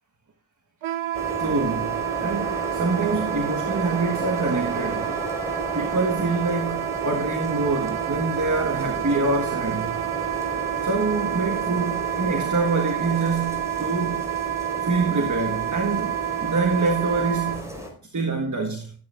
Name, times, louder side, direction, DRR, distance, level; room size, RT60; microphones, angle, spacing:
Wind instrument woodwind instrument, 0.8-17.6, right 12 dB, 85° right, 0.9 m, -29 dB
sound 1, 1.1-17.9, equal, 5° right, 4.6 m, -34 dB
voice 1, 1.4-5.1 5.7-10.0 10.8-14.3 14.8-17.7 18.1-18.9, right 3 dB, 40° right, 1.5 m, -26 dB
13.5 x 8.7 x 2.5 m
cardioid pair, 40°, 47 cm